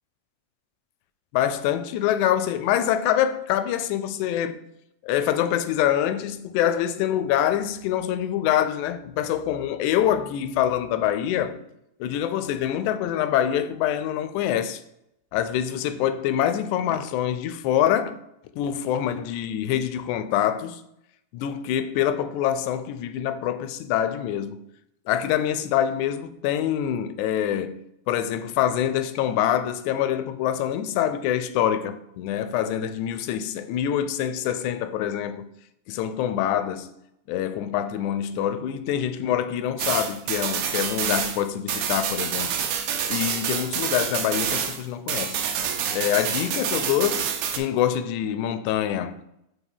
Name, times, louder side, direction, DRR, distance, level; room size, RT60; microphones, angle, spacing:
voice 1, 1.3-4.6 5.0-11.6 12.0-14.8 15.3-18.2 18.6-20.8 21.3-24.6 25.1-27.8 28.1-35.5 35.9-36.9 37.3-42.5 43.1-45.4 45.9-49.2, left 10 dB, 85° left, 2.0 m, -25 dB
sound 1, 39.8-44.8 45.1-47.6, right 8 dB, 80° right, 2.1 m, -27 dB
6.1 x 3.6 x 5.3 m
omnidirectional pair, 3.4 m